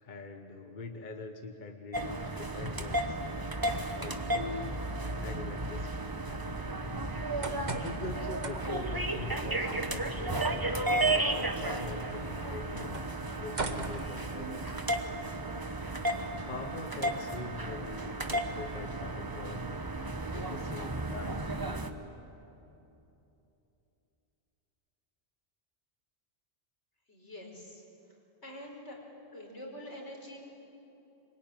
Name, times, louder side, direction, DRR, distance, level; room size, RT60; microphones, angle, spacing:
voice 1, 0.0-3.2 3.9-4.7 5.2-6.2 7.6-10.5 11.0-13.1 13.4-14.8 16.4-19.9 20.3-21.5, left 3 dB, 45° left, 5 dB, 1.3 m, -43 dB
sound 1, 1.9-21.9, right 2 dB, 20° right, 1.1 m, -34 dB
sound 2, 7.1-14.9, right 3 dB, 40° right, 1.4 m, -43 dB
voice 2, 27.1-28.2 28.4-29.0 29.3-30.4, left 1 dB, 80° left, 0 dB, 5.4 m, -46 dB
25.5 x 23.0 x 9.3 m, 2.9 s
omnidirectional pair, 1.2 m